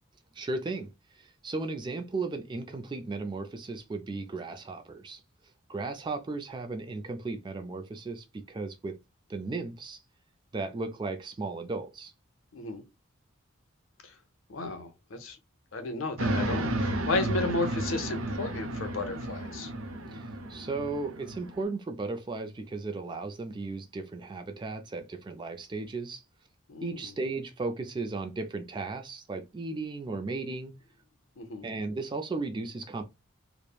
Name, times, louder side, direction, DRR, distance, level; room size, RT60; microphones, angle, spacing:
voice 1, 0.3-5.2 5.7-9.0 9.3-10.0 10.5-12.1 20.1-26.2 26.8-30.8 31.6-33.0, right 3 dB, 20° right, 0.3 m, -35 dB
voice 2, 12.5-12.8 14.0-14.1 14.5-15.4 15.7-19.7 26.7-27.1 31.4-31.7, left 3 dB, 65° left, 0.7 m, -33 dB
sound 1, 16.2-21.6, right 1 dB, 75° right, 0.5 m, -32 dB
3.1 x 2.1 x 2.2 m
head